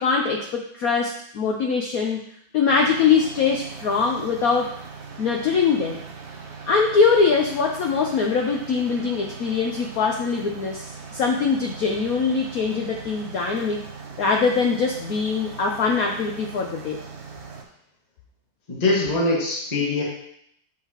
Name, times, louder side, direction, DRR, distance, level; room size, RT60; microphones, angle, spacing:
voice 1, 0.0-2.2 2.5-4.7 5.2-6.0 6.7-13.8 14.2-17.0, left 5 dB, 85° left, 1 dB, 0.7 m, -22 dB
sound 1, 2.7-17.6, right 5 dB, 75° right, 0.6 m, -40 dB
voice 2, 18.7-20.0, left 2 dB, 20° left, -4 dB, 1.3 m, -22 dB
7.9 x 5.6 x 2.9 m, 0.71 s
omnidirectional pair, 2.3 m